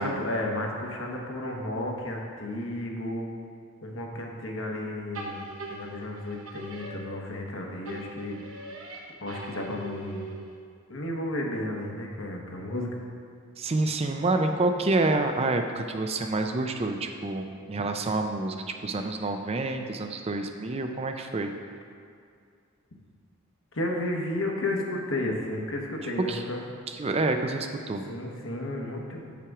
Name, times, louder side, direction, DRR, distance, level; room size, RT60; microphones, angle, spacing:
voice 1, 0.0-3.3 3.8-8.4 9.2-10.3 10.9-13.0 23.7-26.6 28.1-29.4, left 1 dB, 65° left, 0 dB, 1.1 m, -33 dB
sound 1, 5.1-7.5 7.9-10.7, right 2 dB, 70° right, 1.1 m, -41 dB
voice 2, 13.6-21.5 26.3-26.4 27.0-28.0, right 2 dB, 30° right, 5 dB, 0.4 m, -28 dB
7.3 x 5.8 x 4.8 m, 2.3 s
head